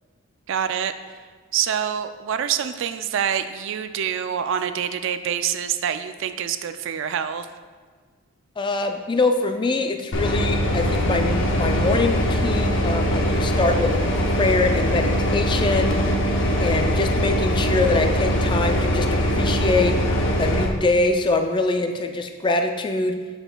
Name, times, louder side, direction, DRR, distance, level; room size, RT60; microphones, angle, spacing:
voice 1, 0.5-0.9 1.5-7.5, right 8 dB, 60° right, 10 dB, 0.3 m, -26 dB
voice 2, 8.6-13.9 14.4-16.0 16.6-20.0 20.4-23.2, left 3 dB, 20° left, 5 dB, 0.3 m, -23 dB
sound 1, 10.1-20.7, equal, 55° left, 0.8 m, -22 dB
12.0 x 4.3 x 2.2 m, 1.5 s
head